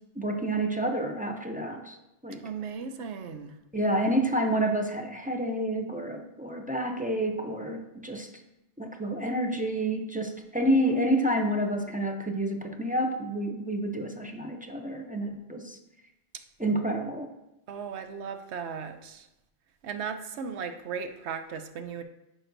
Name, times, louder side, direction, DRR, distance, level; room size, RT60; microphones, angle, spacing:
voice 1, 0.2-2.0 2.2-2.4 3.7-8.3 8.8-15.8 16.6-17.3, right 1 dB, 10° right, 2 dB, 0.4 m, -29 dB
voice 2, 2.4-3.5 17.7-19.3 19.8-22.0, right 6 dB, 80° right, 7 dB, 1.0 m, -36 dB
10.0 x 6.0 x 2.6 m, 0.90 s
omnidirectional pair, 1.1 m